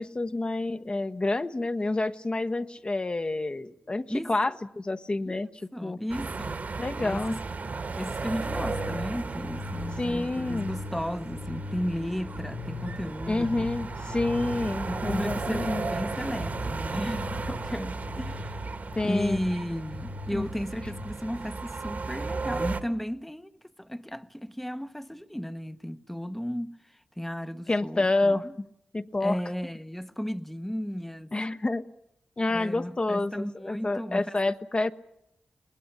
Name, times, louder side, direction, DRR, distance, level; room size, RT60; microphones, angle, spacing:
voice 1, 0.0-5.5 5.8-6.0 6.8-7.4 10.0-10.7 13.3-15.9 19.0-19.4 20.3-20.5 27.7-28.4 28.9-29.4 31.3-31.9 32.4-34.9, left 2 dB, 35° left, 1.1 m, -28 dB
voice 2, 5.7-6.6 7.0-7.3 7.9-13.7 14.8-18.6 19.0-26.8 27.2-28.5 29.2-31.3 32.5-34.3, equal, 5° left, 1.0 m, -34 dB
sound 1, 6.1-22.8, right 4 dB, 60° right, 2.0 m, -35 dB
sound 2, 8.3-21.1, left 3 dB, 80° left, 1.4 m, -40 dB
22.5 x 20.0 x 9.9 m
cardioid pair, 55°, 3 cm